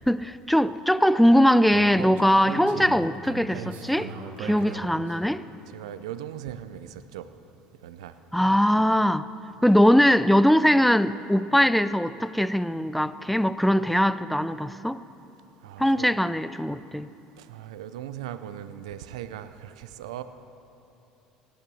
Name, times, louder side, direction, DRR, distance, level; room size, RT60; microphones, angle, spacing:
voice 1, 0.0-4.1 4.4-5.4 8.3-9.3 9.6-15.0 15.8-17.1, equal, ahead, 0.5 m, -21 dB
Speech, 1.7-5.1, right 4 dB, 70° right, 2.0 m, -37 dB
voice 2, 5.6-7.3 7.8-8.2 15.6-16.2 17.4-20.2, right 11 dB, 85° right, 0.6 m, -39 dB
16.5 x 11.0 x 6.3 m
supercardioid pair, 80°, 3 cm